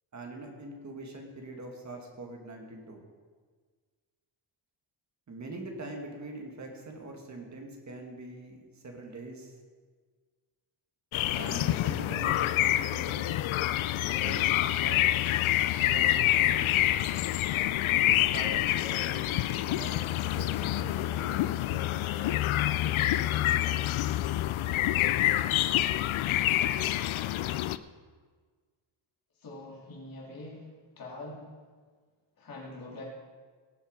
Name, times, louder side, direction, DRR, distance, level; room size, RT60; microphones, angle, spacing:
voice 1, 0.1-3.0 5.3-9.5 11.3-13.4 14.1-15.0 15.8-17.0 18.0-22.3, right 2 dB, 35° right, 2 dB, 2.0 m, -43 dB
sound 1, 11.1-27.8, left 14 dB, 80° left, 0.6 m, -27 dB
voice 2, 29.4-30.7 31.0-31.5 32.4-33.0, left 2 dB, 45° left, -4 dB, 3.5 m, -43 dB
19.0 x 7.1 x 5.1 m, 1.5 s
wide cardioid pair, 165°, 48 cm